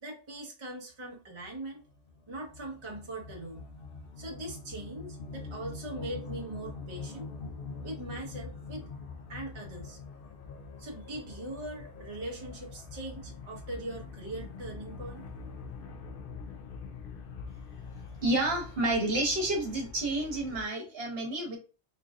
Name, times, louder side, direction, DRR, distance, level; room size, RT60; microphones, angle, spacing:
voice 1, 0.0-1.8 2.3-3.6 4.2-7.3 7.8-8.9 9.3-10.0 10.8-15.2, right 1 dB, 30° right, 1 dB, 0.8 m, -41 dB
sound 1, 1.4-20.6, left 4 dB, 60° left, 0.7 m, -44 dB
voice 2, 18.2-21.6, right 2 dB, 60° right, 1 dB, 1.3 m, -29 dB
3.8 x 3.3 x 2.3 m, 0.35 s
omnidirectional pair, 1.2 m